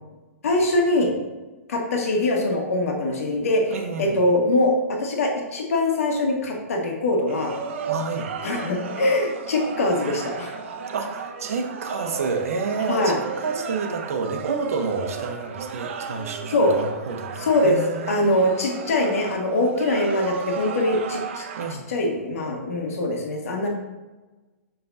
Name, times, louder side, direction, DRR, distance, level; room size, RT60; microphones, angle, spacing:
voice 1, 0.4-1.1 1.7-4.7 5.0-7.5 8.4-10.5 12.9-13.2 16.5-16.8 17.4-17.8 18.1-21.4 21.9-23.7, left 1 dB, 75° left, 1 dB, 1.7 m, -23 dB
voice 2, 3.7-4.2 7.8-8.3 10.9-18.1 21.6-21.9, right 4 dB, 75° right, 4 dB, 1.0 m, -29 dB
sound 1, 7.3-21.7, right 5 dB, 55° right, 0.8 m, -34 dB
6.8 x 5.7 x 2.8 m, 1.2 s
hypercardioid pair, 160°, 8 cm